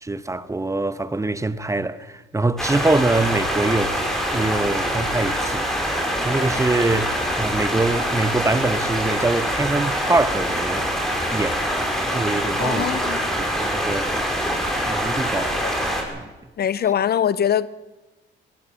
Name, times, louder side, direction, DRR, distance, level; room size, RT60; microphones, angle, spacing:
voice 1, 0.0-10.9 11.3-13.0 13.3-14.1 14.9-15.6 16.1-16.3, right 2 dB, 15° right, 1.1 m, -24 dB
sound 1, 2.6-16.0, equal, ahead, 5.8 m, -24 dB
voice 2, 12.6-13.2 15.6-15.7 16.6-17.7, left 9 dB, 55° left, 0.7 m, -22 dB
20.0 x 17.5 x 7.6 m
cardioid pair, 90°, 20 cm